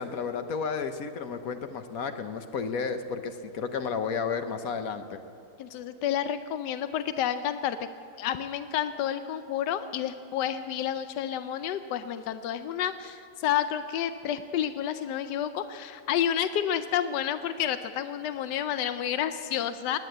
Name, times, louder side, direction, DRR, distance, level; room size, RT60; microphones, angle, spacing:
voice 1, 0.0-5.2, left 5 dB, 60° left, 8 dB, 1.2 m, -32 dB
voice 2, 5.6-7.8 8.2-20.0, left 10 dB, 90° left, 11 dB, 1.2 m, -30 dB
19.0 x 9.8 x 7.9 m, 2.9 s
omnidirectional pair, 1.8 m